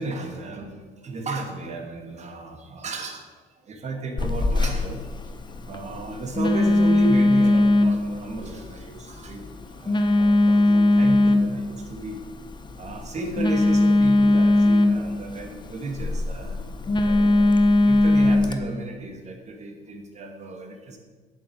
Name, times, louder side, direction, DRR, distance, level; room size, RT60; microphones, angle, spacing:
voice 1, 0.0-3.2 3.5-5.1 5.7-12.2 12.8-21.0, right 2 dB, 40° right, 3 dB, 2.6 m, -34 dB
Telephone, 4.2-18.5, left 2 dB, 25° left, 1.2 m, -21 dB
8.5 x 8.2 x 9.0 m, 1.4 s
cardioid pair, 110°, 17 cm